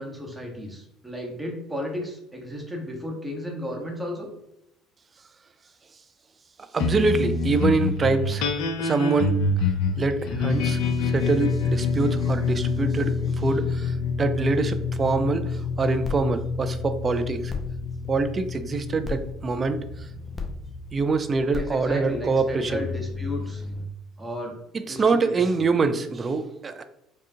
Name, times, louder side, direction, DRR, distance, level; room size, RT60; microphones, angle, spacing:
voice 1, 0.0-4.3 21.5-23.6 24.2-24.5 24.8-25.7, left 1 dB, 5° right, -1 dB, 1.2 m, -34 dB
voice 2, 6.7-8.5 8.8-9.4 10.0-17.5 18.1-19.8 20.9-22.8 24.9-26.8, right 4 dB, 30° right, 9 dB, 0.4 m, -25 dB
sound 1, 6.8-21.5, left 4 dB, 60° left, 0.4 m, -27 dB
Bass guitar, 12.2-16.2, left 8 dB, 90° right, 0.9 m, -51 dB
sound 2, 16.0-23.9, left 4 dB, 20° left, 0.9 m, -37 dB
4.8 x 2.3 x 2.8 m, 0.85 s
figure-of-eight pair, 55°, 0 cm